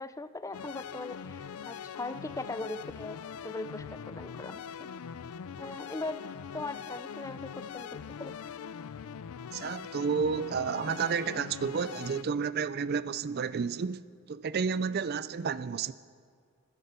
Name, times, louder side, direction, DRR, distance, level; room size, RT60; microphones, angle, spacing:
voice 1, 0.0-4.6 5.6-6.2 6.5-8.3, left 2 dB, 15° left, 0.5 m, -40 dB
sound 1, 0.5-12.2, left 7 dB, 70° left, 0.4 m, -42 dB
voice 2, 9.5-14.0 14.3-15.9, right 6 dB, 45° right, 0.4 m, -31 dB
15.5 x 13.0 x 6.8 m
head